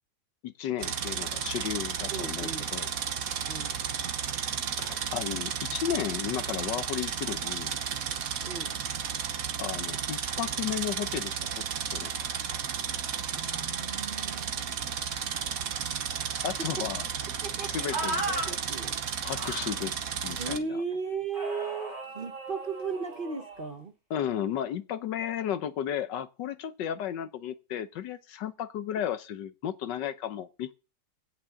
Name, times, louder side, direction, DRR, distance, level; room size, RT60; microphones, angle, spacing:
voice 1, 0.4-2.9 4.8-7.7 9.6-11.6 11.9-12.7 15.3-15.5 16.4-17.0 17.6-18.3 19.2-20.8 24.1-30.7, left 10 dB, 80° left, 1.5 m, -34 dB
sound 1, 0.8-20.6, right 7 dB, 55° right, 1.3 m, -33 dB
voice 2, 2.1-2.7 3.5-3.8 8.4-8.8 13.3-14.7 15.9-16.0 16.6-16.9 17.4-19.0 20.4-23.9, right 4 dB, 35° right, 1.0 m, -36 dB
sound 2, 17.9-18.5 19.4-19.9 21.3-23.7, right 2 dB, 75° right, 5.6 m, -36 dB
16.0 x 6.5 x 3.8 m
omnidirectional pair, 2.0 m